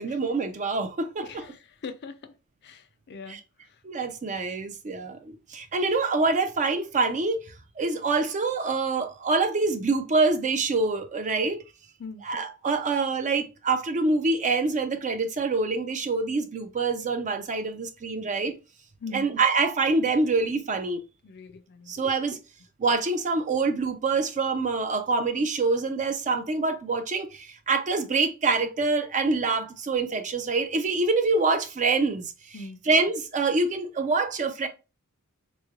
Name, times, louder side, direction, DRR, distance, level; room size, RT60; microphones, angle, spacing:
voice 1, 0.0-1.5 3.3-3.4 3.8-11.6 12.2-18.5 19.1-21.0 21.9-22.4 22.8-34.7, right 3 dB, 35° right, 0.4 m, -26 dB
voice 2, 1.8-2.2 2.6-3.4 12.0-12.2 19.0-19.2 21.2-21.9 32.5-32.8, left 3 dB, 50° left, 0.4 m, -40 dB
3.6 x 3.1 x 2.4 m
head